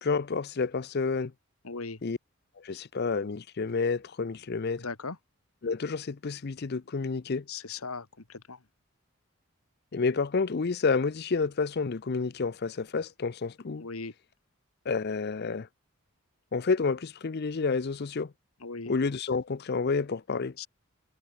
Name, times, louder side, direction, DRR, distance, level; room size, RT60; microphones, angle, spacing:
voice 1, 0.0-1.3 2.0-2.2 2.6-4.8 5.6-7.4 9.9-13.8 14.9-15.7 16.5-18.3 18.9-20.5, left 4 dB, 45° left, 0.5 m, -29 dB
voice 2, 1.6-2.0 2.7-2.8 4.8-5.2 7.5-8.6 13.8-14.1 18.6-18.9 20.6-20.7, left 4 dB, 75° left, 1.8 m, -38 dB
head